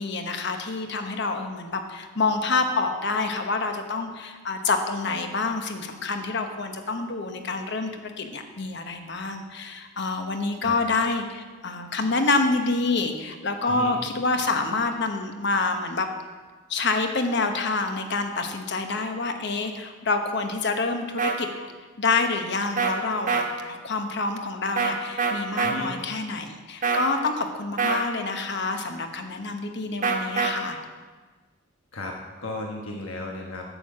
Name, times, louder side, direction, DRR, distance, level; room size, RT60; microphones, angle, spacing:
voice 1, 0.0-16.1 16.7-21.5 22.0-30.8, left 3 dB, 60° left, 6 dB, 1.1 m, -27 dB
sound 1, 21.2-21.3 22.8-22.9 23.3-23.4 24.8-24.9 25.2-25.7 26.8-27.1 27.8-28.1 30.0-30.5, right 5 dB, 40° right, 1.2 m, -24 dB
voice 2, 25.6-25.9 31.9-33.6, left 2 dB, 90° left, 0 dB, 1.2 m, -34 dB
8.3 x 7.5 x 7.5 m, 1.4 s
head